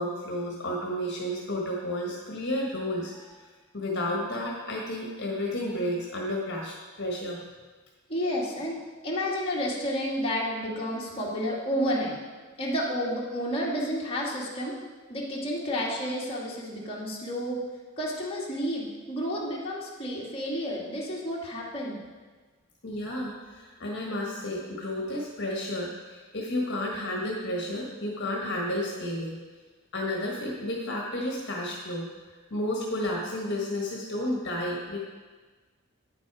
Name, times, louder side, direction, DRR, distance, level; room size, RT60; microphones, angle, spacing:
voice 1, 0.0-3.1 3.7-7.4 22.8-29.4 29.9-32.1 32.5-35.0, left 1 dB, 55° left, -2 dB, 1.5 m, -31 dB
voice 2, 8.1-8.8 9.0-12.1 12.6-14.7 15.1-17.6 18.0-22.0, equal, 25° left, -5 dB, 2.1 m, -30 dB
9.8 x 8.1 x 4.8 m, 1.4 s
head